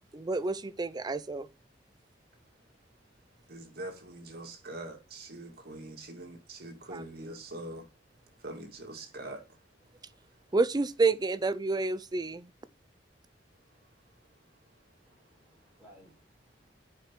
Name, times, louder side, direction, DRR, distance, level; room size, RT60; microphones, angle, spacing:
voice 1, 0.1-1.5 6.9-7.3 10.5-12.5, right 3 dB, 20° right, 0.5 m, -29 dB
voice 2, 3.5-7.9 8.4-9.4, right 1 dB, 60° right, 2.5 m, -43 dB
voice 3, 15.1-16.8, equal, 5° right, 4.6 m, -60 dB
9.5 x 5.0 x 4.5 m
head